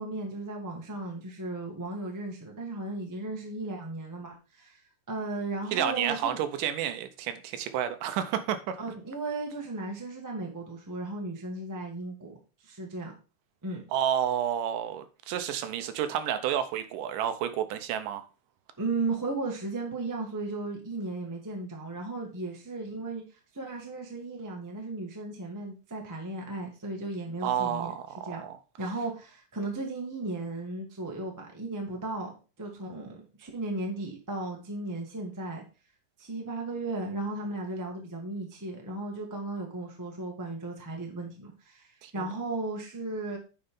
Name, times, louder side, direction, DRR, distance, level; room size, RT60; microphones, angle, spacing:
voice 1, 0.0-4.8 5.1-6.4 8.8-12.4 12.6-13.1 13.6-13.8 18.8-23.2 23.5-27.9 28.3-28.4 28.8-35.6 36.2-43.4, right 2 dB, 20° right, 0.5 m, -35 dB
voice 2, 5.7-8.8 13.9-18.3 27.4-28.6 42.0-42.3, right 10 dB, 80° right, 2.3 m, -30 dB
9.1 x 4.4 x 3.6 m
omnidirectional pair, 3.8 m